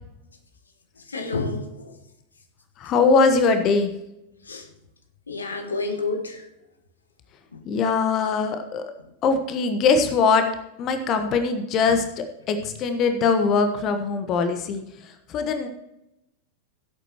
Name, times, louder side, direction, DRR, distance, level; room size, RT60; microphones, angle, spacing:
voice 1, 1.0-2.0 4.4-4.7 5.3-6.5 7.5-7.6 11.8-12.0, left 3 dB, 75° left, 1.5 m, -30 dB
voice 2, 2.8-3.9 7.6-8.8 9.2-10.5 10.8-15.7, left 4 dB, 35° left, 1.2 m, -22 dB
16.0 x 8.3 x 3.0 m
figure-of-eight pair, 90°, 0 cm